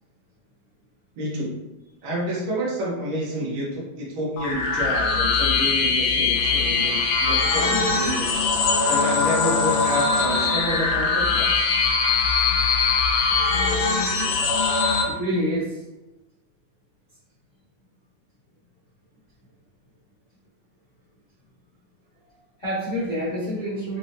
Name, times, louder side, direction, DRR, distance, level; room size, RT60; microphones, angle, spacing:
voice 1, 1.2-1.6 2.0-8.3 8.9-11.7, equal, 90° right, -4 dB, 1.1 m, -29 dB
sound 1, 4.4-15.0, left 4 dB, 90° left, 2.1 m, -21 dB
Trumpet, 6.3-12.1, left 2 dB, 75° right, 2.2 m, -37 dB
voice 2, 12.7-13.3 15.1-15.8 22.2-24.0, equal, 75° left, -10 dB, 0.5 m, -29 dB
5.5 x 2.1 x 2.5 m, 1.0 s
omnidirectional pair, 3.5 m